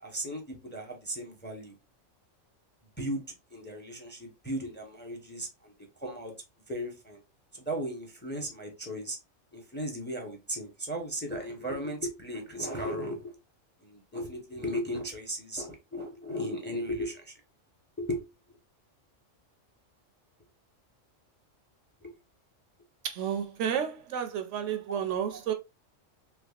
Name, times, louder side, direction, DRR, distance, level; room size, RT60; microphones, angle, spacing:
voice 1, 0.0-1.7 3.0-3.2 3.5-5.7 6.0-6.3 6.7-7.2 7.5-9.2 9.5-13.3 13.8-17.3 18.0-18.2 22.0-22.1 24.9-25.4, equal, 10° left, 0.7 m, -36 dB
voice 2, 23.0-25.5, right 8 dB, 75° right, 0.9 m, -31 dB
3.4 x 3.3 x 2.4 m
omnidirectional pair, 1.3 m